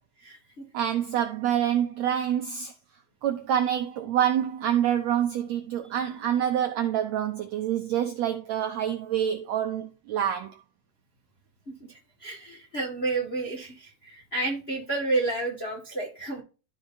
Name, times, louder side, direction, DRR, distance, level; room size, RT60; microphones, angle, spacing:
voice 1, 0.2-0.6 11.9-16.4, right 2 dB, 25° left, 1.3 m, -31 dB
voice 2, 0.7-2.7 3.2-10.5, right 10 dB, 75° right, 1.6 m, -26 dB
13.0 x 5.4 x 2.7 m
omnidirectional pair, 4.0 m